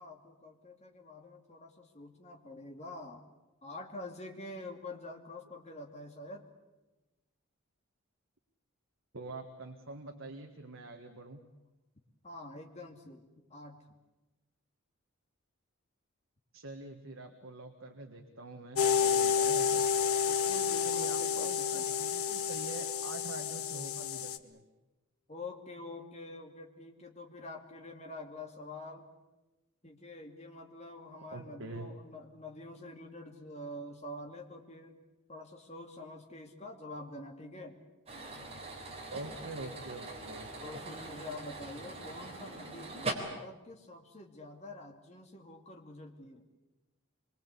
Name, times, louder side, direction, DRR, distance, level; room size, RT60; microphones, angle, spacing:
voice 1, 0.0-3.3 3.6-6.5 12.2-13.2 13.5-13.8 20.3-21.9 25.3-29.1 29.8-35.0 35.3-37.8 40.6-46.4, left 2 dB, 30° left, 2 dB, 2.5 m, -46 dB
voice 2, 9.1-11.4 16.5-19.9 20.8-24.6 31.3-31.9 39.1-40.5, right 2 dB, 60° right, 4 dB, 1.6 m, -45 dB
sound 1, 18.8-24.4, left 7 dB, 80° left, 1.2 m, -30 dB
sound 2, 38.1-43.1, right 2 dB, 30° right, 3.9 m, -42 dB
25.5 x 23.0 x 8.4 m, 1.1 s
head